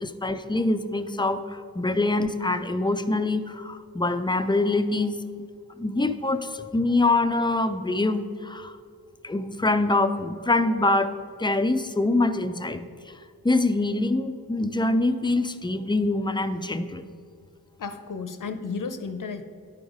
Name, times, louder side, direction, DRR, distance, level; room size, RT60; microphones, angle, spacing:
voice 1, 0.0-5.2 5.8-8.8 9.2-11.1 11.4-12.8 13.4-17.0, left 2 dB, 15° left, 10 dB, 0.4 m, -24 dB
voice 2, 17.8-19.4, left 5 dB, 60° left, 9 dB, 0.6 m, -33 dB
10.5 x 3.9 x 4.9 m, 2.2 s
cardioid pair, 45°, 36 cm